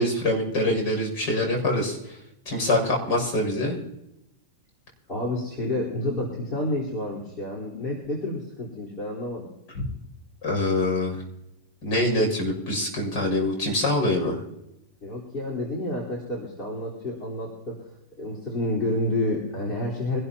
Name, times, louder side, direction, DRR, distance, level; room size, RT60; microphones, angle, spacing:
voice 1, 0.0-2.0 2.4-3.8 10.4-11.1 11.8-14.4, left 1 dB, 45° left, 1 dB, 6.6 m, -24 dB
voice 2, 5.1-9.5 15.0-17.8 18.2-20.2, left 1 dB, 30° left, -5 dB, 4.2 m, -29 dB
25.0 x 12.5 x 2.9 m, 0.86 s
hypercardioid pair, 135°, 0 cm